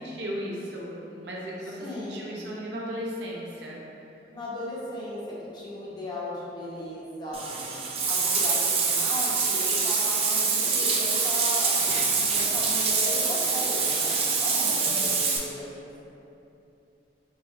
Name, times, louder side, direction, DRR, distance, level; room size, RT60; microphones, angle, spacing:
voice 1, 0.0-3.8 14.9-15.0, equal, 70° right, -4 dB, 0.6 m, -36 dB
voice 2, 1.8-2.4 4.3-7.6 8.1-11.8 12.3-15.9, left 1 dB, 25° left, -7 dB, 0.7 m, -36 dB
Bathtub (filling or washing), 7.3-15.4, right 4 dB, 35° right, 0.3 m, -25 dB
4.3 x 3.0 x 2.3 m, 2.8 s
head